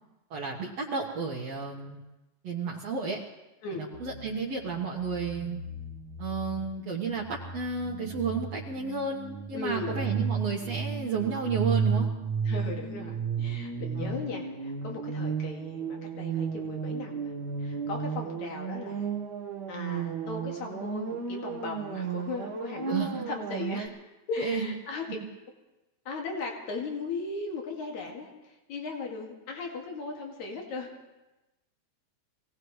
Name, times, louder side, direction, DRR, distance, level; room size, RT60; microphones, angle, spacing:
voice 1, 0.3-2.0 2.4-3.2 3.8-5.6 6.2-12.1 14.0-14.2 22.9-23.2 23.8-23.9 24.4-24.7, right 5 dB, 65° right, -2 dB, 2.2 m, -32 dB
sound 1, 3.9-23.9, right 6 dB, 45° right, 1.5 m, -34 dB
voice 2, 9.5-10.2 12.4-17.3 17.6-19.1 19.7-23.9 24.3-25.0 26.0-30.9, left 3 dB, 70° left, 0 dB, 3.4 m, -37 dB
24.0 x 17.5 x 3.2 m, 1.0 s
omnidirectional pair, 3.4 m